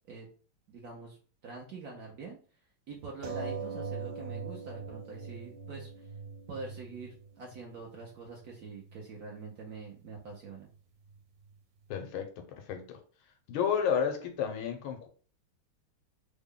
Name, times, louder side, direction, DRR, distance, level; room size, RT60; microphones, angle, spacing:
voice 1, 0.7-1.2 1.4-2.4 2.9-6.1 6.5-10.7, right 4 dB, 70° right, 0.9 m, -45 dB
sound 1, 3.2-8.2 9.0-9.1 9.4-9.5, right 5 dB, 85° right, 1.6 m, -41 dB
voice 2, 11.9-13.0 13.5-15.1, left 7 dB, 80° left, 1.4 m, -31 dB
3.6 x 2.1 x 3.6 m
omnidirectional pair, 2.3 m